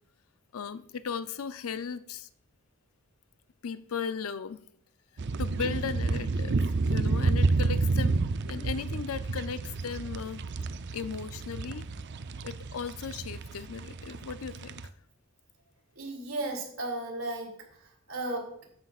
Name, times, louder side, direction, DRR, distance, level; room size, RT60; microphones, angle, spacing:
voice 1, 0.5-2.3 3.6-4.6 5.4-6.6 6.9-10.5 10.9-11.9 12.4-14.7, left 6 dB, 80° left, 13 dB, 0.5 m, -36 dB
sound 1, 5.2-14.9, right 3 dB, 55° right, 0.5 m, -30 dB
voice 2, 15.9-18.6, right 2 dB, 70° right, 0 dB, 2.9 m, -35 dB
13.0 x 9.6 x 2.4 m, 0.70 s
head